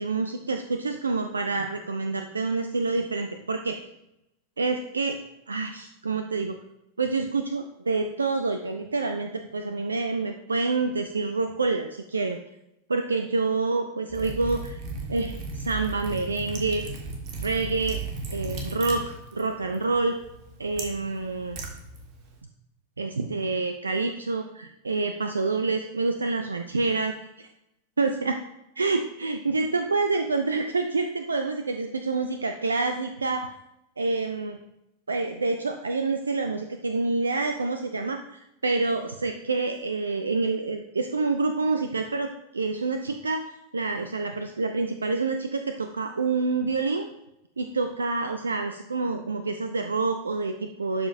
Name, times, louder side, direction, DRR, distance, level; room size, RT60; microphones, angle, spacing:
voice 1, 0.0-3.8 4.6-5.2 5.5-6.6 7.0-12.4 12.9-14.8 15.1-16.8 17.4-18.0 18.3-20.2 20.6-21.6 23.0-27.5 28.0-28.4 28.8-33.5 34.0-34.6 35.1-47.1 47.6-51.1, right 3 dB, 75° right, 7 dB, 0.4 m, -27 dB
Liquid, 14.1-22.4, right 3 dB, 40° right, 1.4 m, -36 dB
11.5 x 5.0 x 2.6 m, 0.86 s
figure-of-eight pair, 90°, 0 cm